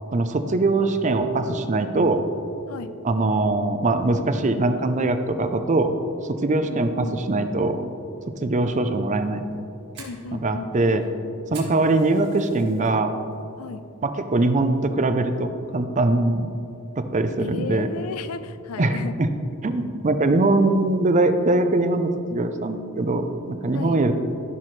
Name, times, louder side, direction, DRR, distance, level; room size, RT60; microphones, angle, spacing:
voice 1, 0.1-2.2 3.0-5.9 6.3-7.8 8.4-9.5 10.3-11.0 11.5-13.1 14.0-16.5 17.0-17.9 18.8-19.3 19.6-24.1, right 2 dB, 35° right, 9 dB, 0.5 m, -22 dB
voice 2, 6.7-7.2 10.0-10.7 13.6-13.9 17.4-19.2 23.7-24.0, left 5 dB, 80° left, 12 dB, 0.5 m, -34 dB
Fire, 9.4-12.9 13.3-13.7 14.1-14.2 14.8-15.1, right 4 dB, 50° right, 2.3 m, -45 dB
15.0 x 5.8 x 3.2 m, 2.6 s
head